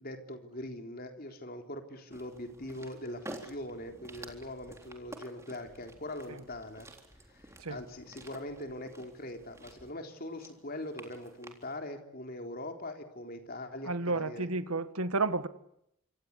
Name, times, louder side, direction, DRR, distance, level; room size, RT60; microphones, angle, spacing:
voice 1, 0.0-6.9 7.3-14.5, left 1 dB, 40° left, 3.8 m, -42 dB
sound 1, 2.1-11.8, right 1 dB, 15° right, 3.8 m, -51 dB
voice 2, 13.9-15.5, right 3 dB, 85° right, 1.8 m, -31 dB
27.5 x 25.5 x 8.5 m
head